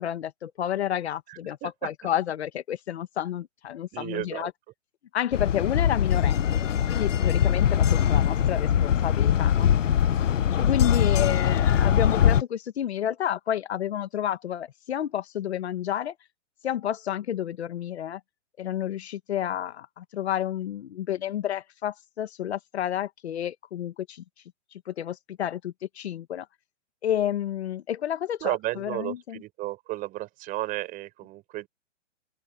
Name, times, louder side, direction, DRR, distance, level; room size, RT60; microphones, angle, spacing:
voice 1, 0.0-1.6 1.8-4.5 5.1-9.7 10.6-16.1 16.6-18.2 18.6-24.2 24.7-26.5 27.0-29.4, left 10 dB, 60° left, 1.5 m, -30 dB
voice 2, 1.3-1.9 3.9-4.5 10.8-11.1 28.4-31.7, right 17 dB, 20° right, 6.6 m, -33 dB
sound 1, 5.3-12.4, left 9 dB, 85° left, 1.0 m, -22 dB
open air
hypercardioid pair, 155°, 37 cm